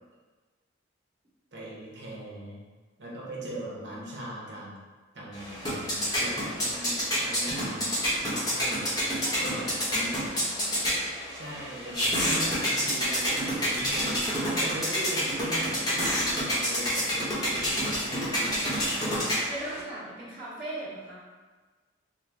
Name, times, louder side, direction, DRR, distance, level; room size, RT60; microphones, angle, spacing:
voice 1, 1.5-2.7 3.0-4.8 5.1-8.9 9.4-10.2 11.3-17.8 18.2-18.9, right 1 dB, 65° right, -4 dB, 0.9 m, -39 dB
sound 1, 5.3-19.8, equal, 20° left, 0.8 m, -28 dB
voice 2, 9.2-10.5 18.3-21.2, right 1 dB, 30° right, -12 dB, 1.5 m, -40 dB
4.2 x 2.0 x 3.3 m, 1.3 s
head